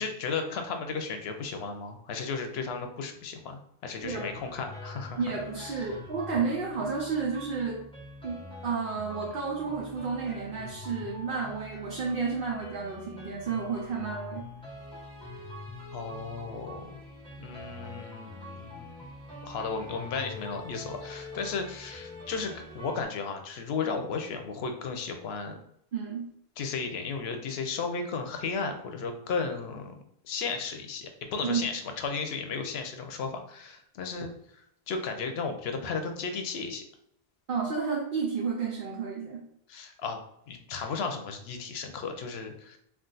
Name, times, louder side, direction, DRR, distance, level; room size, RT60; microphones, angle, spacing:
voice 1, 0.0-5.2 5.7-6.0 15.9-16.9 17.4-18.9 19.4-25.6 26.6-34.3 34.9-36.8 39.7-42.8, left 5 dB, 90° left, 6 dB, 0.8 m, -34 dB
sound 1, 4.0-23.1, left 2 dB, 5° left, 0.7 m, -44 dB
voice 2, 5.2-7.9 8.2-14.4 25.9-26.3 31.4-31.7 37.5-39.4, right 5 dB, 60° right, -3 dB, 0.8 m, -31 dB
2.4 x 2.4 x 3.8 m, 0.71 s
omnidirectional pair, 1.0 m